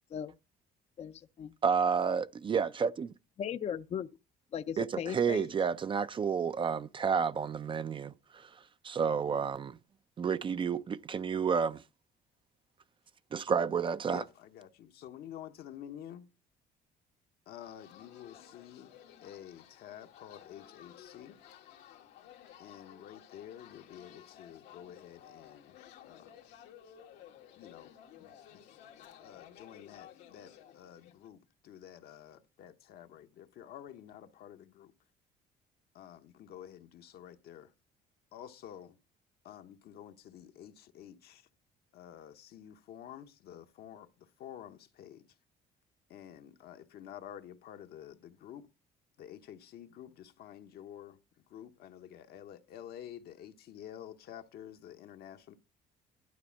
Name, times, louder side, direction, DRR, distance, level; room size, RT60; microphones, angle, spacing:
voice 1, 1.0-1.5 3.4-4.1 4.5-5.5, left 8 dB, 40° left, 0.5 m, -37 dB
voice 2, 1.6-3.1 4.8-9.8 10.2-11.8 13.3-14.2, right 6 dB, 30° right, 0.4 m, -31 dB
voice 3, 14.1-16.3 17.5-18.9 19.2-21.4 22.6-25.8 26.0-26.4 27.6-27.9 28.2-28.6 29.2-34.9 35.9-37.7 38.3-39.0 39.4-41.5 41.9-45.2 46.1-48.7 49.2-51.2 51.5-55.6, left 10 dB, 70° left, 1.0 m, -50 dB
sound 1, 17.6-31.3, left 10 dB, 90° left, 1.7 m, -55 dB
11.5 x 4.2 x 7.1 m
cardioid pair, 110°, 17 cm